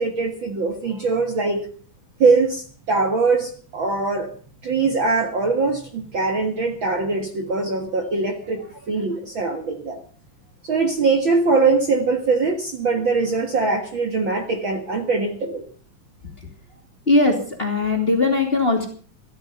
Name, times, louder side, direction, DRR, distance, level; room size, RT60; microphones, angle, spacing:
voice 1, 0.0-1.7 2.2-4.3 4.6-10.0 10.6-15.6, right 4 dB, 45° right, 4 dB, 2.1 m, -22 dB
voice 2, 17.1-18.9, left 2 dB, 20° left, 2 dB, 2.7 m, -19 dB
14.5 x 14.0 x 5.7 m, 0.43 s
omnidirectional pair, 3.5 m